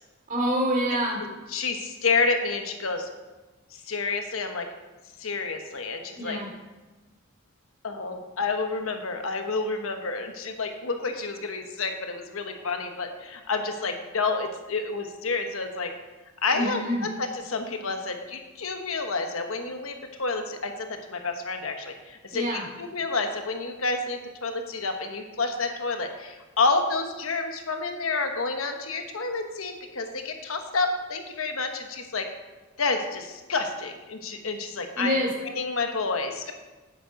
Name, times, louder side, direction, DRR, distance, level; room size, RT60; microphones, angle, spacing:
voice 1, 0.3-1.2 6.2-6.5 16.5-17.1 22.3-22.7 34.9-35.3, equal, 40° right, -2 dB, 2.8 m, -26 dB
voice 2, 1.2-3.1 3.9-4.7 5.2-6.4 7.8-15.9 16.4-32.3 32.8-35.2 35.5-36.5, left 3 dB, 80° left, 5 dB, 1.1 m, -29 dB
9.4 x 7.4 x 5.2 m, 1.2 s
head